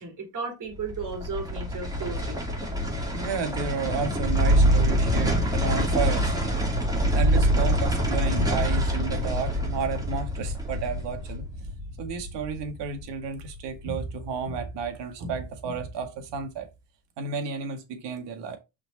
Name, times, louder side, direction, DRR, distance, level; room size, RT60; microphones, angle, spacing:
voice 1, 0.0-2.4, right 4 dB, 45° right, 3.4 m, -35 dB
sound 1, 0.7-13.9 14.2-14.3, equal, 10° right, 2.4 m, -25 dB
voice 2, 3.1-6.3 6.8-11.4 12.0-16.7 17.2-18.6, right 5 dB, 70° right, 2.0 m, -32 dB
5.9 x 4.6 x 4.0 m
cardioid pair, 120°, 44 cm